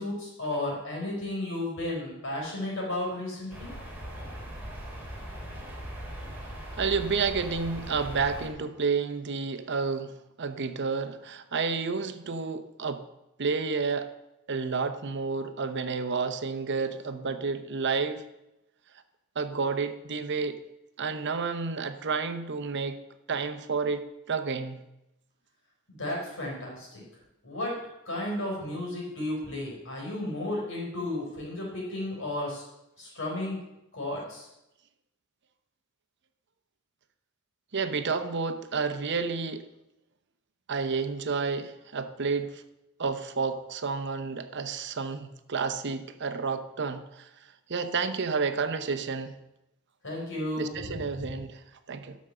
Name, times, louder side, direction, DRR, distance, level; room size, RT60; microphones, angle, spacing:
voice 1, 0.0-3.7 25.9-27.0 27.4-27.8 28.0-32.6 33.0-33.6 33.9-34.5 50.0-51.4, left 1 dB, 65° left, -2 dB, 4.5 m, -33 dB
sound 1, 3.5-8.5, equal, 10° right, 2.6 m, -40 dB
voice 2, 6.8-13.0 13.4-14.1 14.5-18.2 19.4-20.6 21.0-23.0 23.3-24.8 37.7-39.6 40.7-42.6 43.0-47.3 47.7-49.3 50.6-52.2, right 5 dB, 55° right, 10 dB, 0.8 m, -30 dB
11.5 x 6.2 x 6.7 m, 0.90 s
head